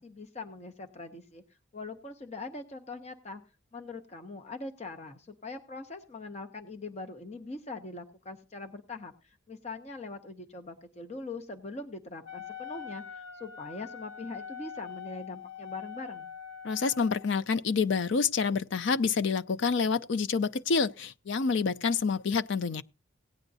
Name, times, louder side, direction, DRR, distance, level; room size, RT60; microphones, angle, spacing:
voice 1, 0.0-1.4 1.7-3.4 3.7-16.3, left 3 dB, 30° left, 0.7 m, -42 dB
Wind instrument woodwind instrument, 12.2-17.3, left 7 dB, 80° left, 1.3 m, -43 dB
voice 2, 16.6-22.8, left 5 dB, 65° left, 0.5 m, -28 dB
17.5 x 9.0 x 2.7 m
head